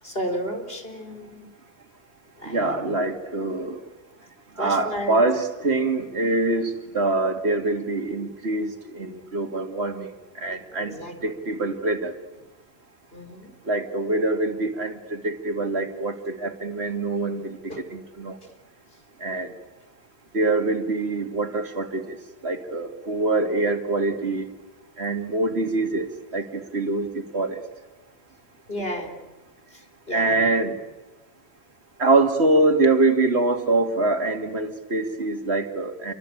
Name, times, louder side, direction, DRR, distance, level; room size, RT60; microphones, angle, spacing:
voice 1, 0.0-1.5 2.4-2.8 4.6-5.2 10.8-11.4 13.1-13.5 17.7-17.8 28.7-29.3 29.7-30.5, equal, 65° left, 3 dB, 4.2 m, -33 dB
voice 2, 2.5-3.8 4.6-10.1 10.3-12.1 13.7-17.6 17.9-18.4 19.2-19.5 20.3-22.2 22.4-24.5 25.0-27.6 30.1-30.8 32.0-36.1, right 2 dB, 90° right, 5 dB, 2.5 m, -24 dB
28.0 x 24.0 x 8.6 m, 1.2 s
omnidirectional pair, 1.1 m